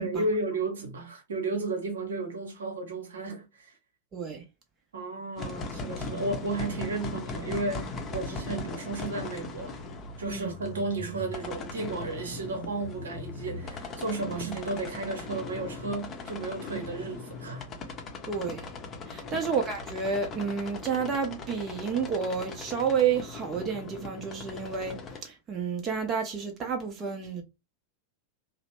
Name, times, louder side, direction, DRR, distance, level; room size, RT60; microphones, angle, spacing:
voice 1, 0.0-3.7 4.9-9.7 10.2-17.7 19.2-19.5, right 2 dB, 65° right, 0.9 m, -33 dB
voice 2, 4.1-4.4 10.3-10.5 18.3-18.7 19.1-27.4, right 6 dB, 25° right, 0.7 m, -30 dB
sound 1, 5.4-25.2, left 3 dB, 25° left, 0.7 m, -39 dB
2.9 x 2.0 x 2.9 m
figure-of-eight pair, 90°, 0 cm